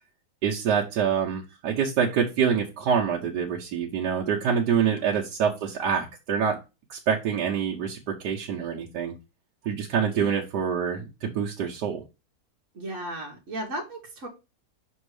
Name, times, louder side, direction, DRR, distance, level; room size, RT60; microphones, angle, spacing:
voice 1, 0.4-6.6 6.9-9.1 9.6-12.0, right 7 dB, 90° right, -1 dB, 1.4 m, -26 dB
voice 2, 12.7-14.3, right 1 dB, 50° right, -1 dB, 1.5 m, -35 dB
6.2 x 3.6 x 4.8 m, 0.27 s
omnidirectional pair, 1.7 m